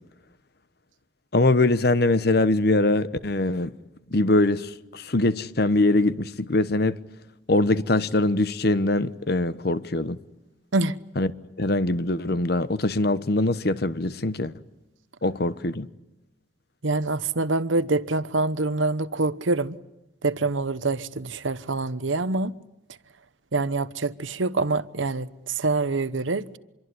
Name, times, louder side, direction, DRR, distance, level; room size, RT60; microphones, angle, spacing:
voice 1, 1.3-3.7 4.1-7.0 7.5-10.2 11.2-11.3 11.6-14.5 15.2-15.9, left 2 dB, 55° left, 1.1 m, -22 dB
voice 2, 16.8-19.8 20.2-22.5 23.5-26.6, right 3 dB, 80° right, 1.1 m, -25 dB
26.5 x 23.0 x 9.8 m
head